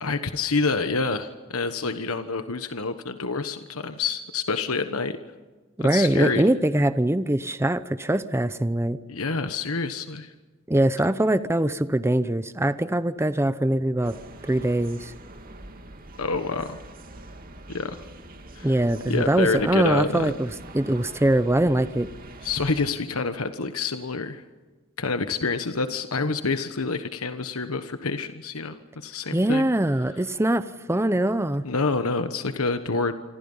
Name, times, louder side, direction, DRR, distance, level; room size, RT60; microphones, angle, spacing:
voice 1, 0.0-5.2 5.8-6.5 9.1-10.3 16.2-16.8 17.7-18.0 18.5-18.7 19.1-20.3 22.4-24.4 25.0-29.6 31.6-33.1, left 4 dB, 75° left, 9 dB, 1.3 m, -27 dB
voice 2, 5.8-9.0 10.7-14.2 14.4-15.1 18.6-20.5 20.7-22.1 29.3-31.6, right 1 dB, 10° right, 13 dB, 0.7 m, -23 dB
sound 1, 14.0-22.9, right 2 dB, 40° right, 2.4 m, -43 dB
27.0 x 26.0 x 5.6 m, 1.3 s
head